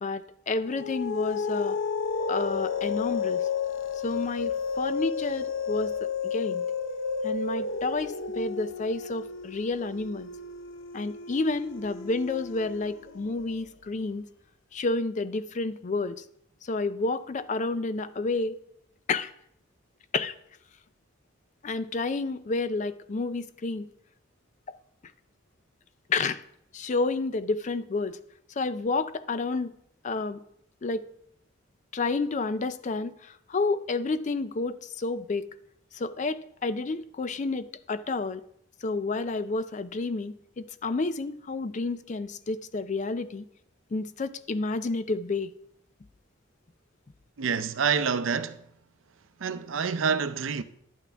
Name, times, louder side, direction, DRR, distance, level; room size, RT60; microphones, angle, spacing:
voice 1, 0.0-1.8 2.3-3.5 4.0-6.6 7.2-10.3 10.9-14.3 14.7-16.2 16.6-18.6 19.1-19.3 20.1-20.4 21.6-23.9 24.7-24.8 26.1-26.4 26.7-28.2 28.6-29.7 30.0-30.4 30.8-31.0 31.9-35.4 35.9-38.4 38.8-43.4 43.9-45.5, left 3 dB, 40° left, 0.4 m, -30 dB
sound 1, 0.6-13.4, left 5 dB, 80° left, 0.6 m, -32 dB
voice 2, 47.4-48.6 49.4-50.6, right 6 dB, 90° right, 0.5 m, -27 dB
11.0 x 8.4 x 3.4 m
head